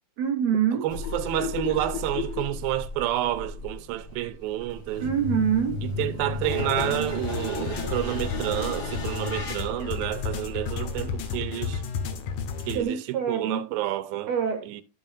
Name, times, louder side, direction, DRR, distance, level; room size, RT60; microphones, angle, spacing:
voice 1, 0.2-0.8 5.0-5.8 12.7-13.6 14.3-14.8, right 8 dB, 70° right, 1.6 m, -25 dB
voice 2, 0.7-5.1 5.8-11.8 12.7-14.3 14.6-14.8, right 14 dB, 90° right, 2.4 m, -29 dB
sound 1, 0.9-11.4, left 3 dB, 35° left, 1.8 m, -33 dB
sound 2, 6.5-12.8, left 5 dB, 70° left, 2.2 m, -33 dB
13.0 x 7.1 x 2.5 m
omnidirectional pair, 4.2 m